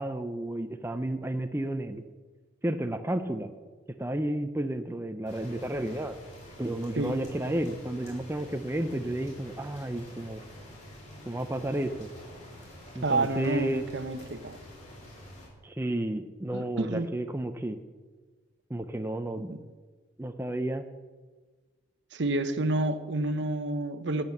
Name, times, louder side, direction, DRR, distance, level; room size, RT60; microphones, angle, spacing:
voice 1, 0.0-2.0 2.6-3.5 4.0-6.2 6.6-10.4 11.3-12.1 12.9-13.8 15.6-17.8 18.7-19.5 20.2-20.9, right 1 dB, 10° right, 7 dB, 0.5 m, -32 dB
sound 1, 5.3-15.5, left 1 dB, 35° left, 4.0 m, -48 dB
voice 2, 13.0-14.6 16.5-17.1 19.5-19.6 22.1-24.2, right 2 dB, 60° right, 11 dB, 0.8 m, -29 dB
12.0 x 8.9 x 7.2 m, 1.4 s
head